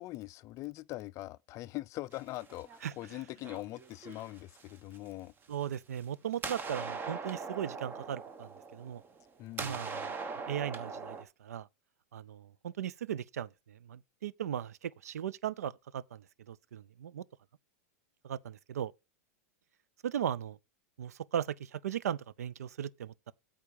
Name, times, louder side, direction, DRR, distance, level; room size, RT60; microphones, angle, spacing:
voice 1, 0.0-5.3 9.4-9.8, left 17 dB, 40° left, 0.4 m, -42 dB
sound 1, 2.1-3.0 3.4-5.0 5.6-6.0 6.3-9.3 9.6-11.2, right 4 dB, 25° right, 1.1 m, -41 dB
voice 2, 2.8-3.2 5.5-9.0 9.6-10.1 10.5-11.7 12.1-17.2 18.2-18.9 20.0-20.6 21.0-23.3, right 9 dB, 90° right, 0.5 m, -38 dB
8.7 x 3.7 x 6.8 m
hypercardioid pair, 115°, 8 cm